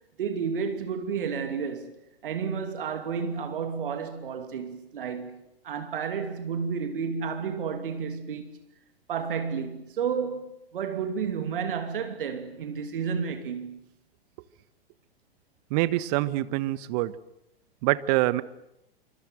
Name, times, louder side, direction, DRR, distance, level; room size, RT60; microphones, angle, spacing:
voice 1, 0.2-1.9 2.2-8.6 9.1-13.8, right 6 dB, 60° right, 2.8 m, -31 dB
voice 2, 15.7-17.1 17.8-18.4, right 17 dB, 40° right, 1.4 m, -25 dB
27.0 x 25.5 x 7.8 m
figure-of-eight pair, 100°, 30 cm